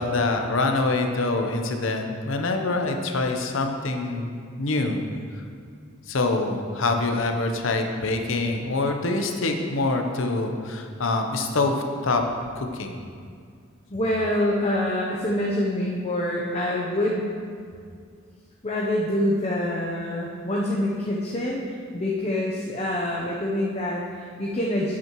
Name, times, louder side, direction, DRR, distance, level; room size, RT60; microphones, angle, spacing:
voice 1, 0.0-4.3 4.6-5.0 6.1-12.2 12.6-13.0, left 3 dB, 70° left, 4 dB, 0.8 m, -25 dB
voice 2, 13.9-17.3 18.6-25.0, left 1 dB, 30° left, -3 dB, 0.7 m, -26 dB
10.5 x 8.4 x 3.1 m, 2.1 s
head